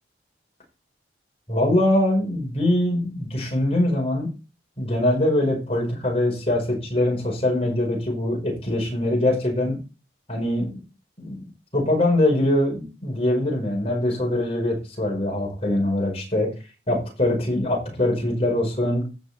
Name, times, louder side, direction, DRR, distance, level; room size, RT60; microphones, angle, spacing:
voice 1, 1.5-4.3 4.8-9.8 10.3-10.8 11.2-11.4 11.7-16.5 16.9-19.0, left 1 dB, 30° left, -1 dB, 5.3 m, -23 dB
15.5 x 6.3 x 4.4 m, 0.31 s
head